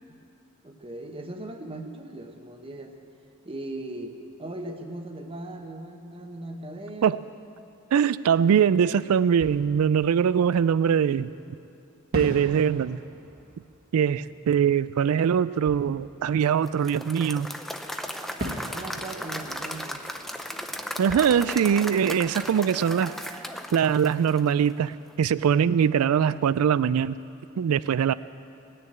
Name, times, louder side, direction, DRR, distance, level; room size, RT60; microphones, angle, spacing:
voice 1, 0.6-3.0 3.4-7.2 18.7-20.0, right 1 dB, 25° right, 4 dB, 1.1 m, -38 dB
voice 2, 7.9-11.3 12.1-13.0 13.9-17.5 21.0-23.1 23.7-27.2 27.6-28.1, right 8 dB, 85° right, 17 dB, 0.3 m, -22 dB
Fireworks, 9.3-11.3 12.1-17.5 18.4-23.1, equal, 45° right, 1.7 m, -41 dB
Applause / Crowd, 16.7-24.8, equal, ahead, 0.6 m, -36 dB
19.0 x 6.7 x 8.8 m, 2.5 s
head